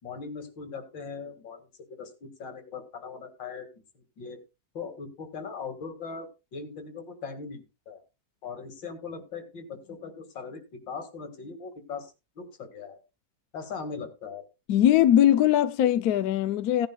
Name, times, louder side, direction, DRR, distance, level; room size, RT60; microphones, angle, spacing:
voice 1, 0.0-4.4 4.7-8.0 8.4-13.0 13.5-14.4, left 5 dB, 90° left, 2.8 m, -40 dB
voice 2, 14.7-16.9, left 11 dB, 65° left, 1.1 m, -21 dB
17.0 x 10.5 x 2.3 m
omnidirectional pair, 1.9 m